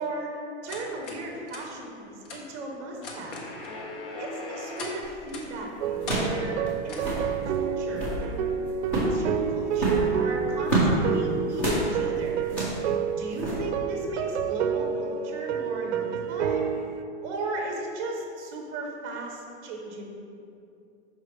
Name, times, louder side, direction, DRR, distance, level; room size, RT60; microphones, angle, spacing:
voice 1, 0.0-3.5 4.2-8.5 8.9-12.4 13.1-16.7 17.2-20.1, right 2 dB, 25° right, 0 dB, 0.9 m, -35 dB
sound 1, 0.7-1.2 1.5-1.6 2.2-2.4 3.0-5.0 5.3-5.5 6.1-6.3 6.9-7.1, left 3 dB, 50° left, 1.0 m, -37 dB
sound 2, 5.0-5.3 6.0-6.4 6.7-6.8 6.9-7.3 7.8-8.2 8.8-9.2 9.7-11.0 11.6-11.9 12.4-12.8 13.4-13.6, right 2 dB, 5° left, 0.3 m, -27 dB
sound 3, 5.8-17.0, right 7 dB, 75° right, 0.5 m, -29 dB
5.9 x 5.2 x 3.2 m, 2.5 s
supercardioid pair, 165°, 34 cm